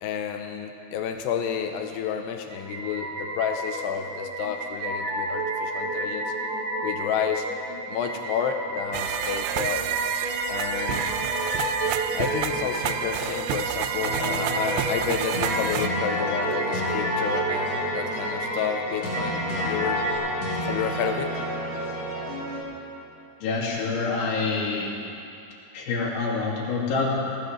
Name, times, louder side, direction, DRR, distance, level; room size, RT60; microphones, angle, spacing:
voice 1, 0.0-6.2 6.8-7.5 7.9-9.9 10.5-11.2 12.1-20.0 20.4-21.3, left 8 dB, 80° left, 5 dB, 2.6 m, -30 dB
sound 1, 2.5-20.2, right 1 dB, 70° right, 4.6 m, -31 dB
sound 2, 8.9-15.9, right 11 dB, 85° right, 2.6 m, -30 dB
sound 3, 14.0-22.6, equal, 40° left, 4.0 m, -31 dB
voice 2, 23.4-24.9 25.7-27.2, left 4 dB, 55° left, -4 dB, 3.7 m, -26 dB
21.5 x 15.5 x 3.3 m, 2.7 s
omnidirectional pair, 5.4 m